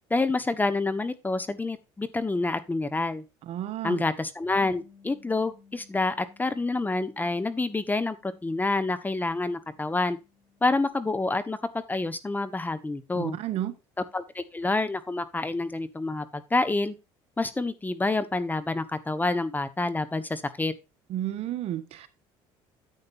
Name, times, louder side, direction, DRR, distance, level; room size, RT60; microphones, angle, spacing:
voice 1, 0.1-3.2 3.8-10.2 10.6-13.4 14.1-16.9 17.4-20.7, left 3 dB, 15° left, 14 dB, 1.2 m, -28 dB
voice 2, 3.5-4.0 13.1-13.7 21.1-22.1, right 12 dB, 65° right, 11 dB, 1.4 m, -31 dB
Bass guitar, 4.7-10.9, left 5 dB, 10° right, 4.2 m, -59 dB
9.9 x 8.7 x 2.6 m, 0.26 s
supercardioid pair, 90°, 12 cm